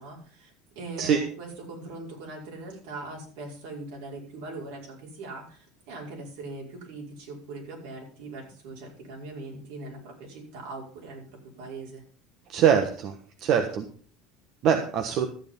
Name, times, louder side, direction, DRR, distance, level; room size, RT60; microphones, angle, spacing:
voice 1, 0.0-12.0, right 2 dB, 80° right, -1 dB, 5.1 m, -41 dB
voice 2, 12.5-13.9 14.6-15.3, right 8 dB, 55° right, 5 dB, 1.3 m, -23 dB
13.0 x 7.8 x 5.4 m, 0.44 s
supercardioid pair, 125°, 0 cm